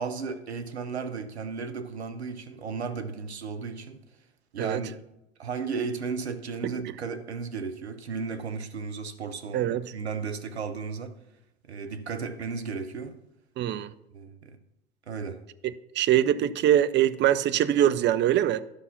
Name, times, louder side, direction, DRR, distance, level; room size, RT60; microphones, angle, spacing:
voice 1, 0.0-4.0 4.5-5.0 5.4-11.2 11.6-13.2 14.1-14.6 15.1-15.4, right 5 dB, 85° right, 0.9 m, -34 dB
voice 2, 9.5-9.8 13.6-13.9 16.0-18.6, right 11 dB, 35° right, 0.5 m, -23 dB
11.5 x 5.6 x 5.8 m
hypercardioid pair, 75°, 32 cm